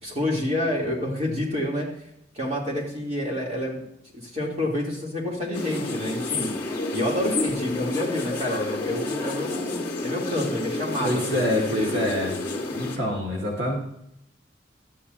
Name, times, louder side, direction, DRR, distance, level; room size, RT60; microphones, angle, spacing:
voice 1, 0.0-1.9 2.3-3.8 4.1-6.5 6.9-12.1, left 1 dB, 40° right, -3 dB, 3.2 m, -28 dB
sound 1, 5.5-13.0, left 2 dB, 15° left, 2.1 m, -30 dB
voice 2, 11.0-12.4 12.7-13.8, left 1 dB, 75° right, -2 dB, 1.9 m, -26 dB
13.0 x 9.5 x 2.8 m, 0.76 s
head